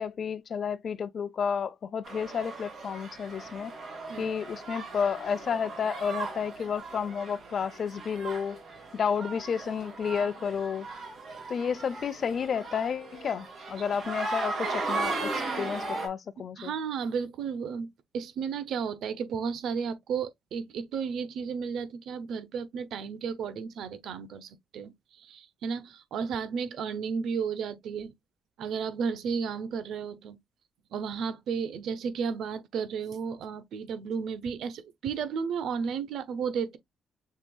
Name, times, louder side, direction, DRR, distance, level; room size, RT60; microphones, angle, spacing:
voice 1, 0.0-3.7 4.2-8.6 8.9-10.9 11.5-16.7, left 7 dB, 55° left, 0.5 m, -31 dB
sound 1, 2.0-16.1, right 3 dB, 45° right, 2.9 m, -37 dB
voice 2, 16.6-17.9 18.1-28.1 28.6-30.4 30.9-36.8, right 6 dB, 75° right, 0.8 m, -33 dB
6.5 x 3.4 x 2.3 m
cardioid pair, 90°, 0 cm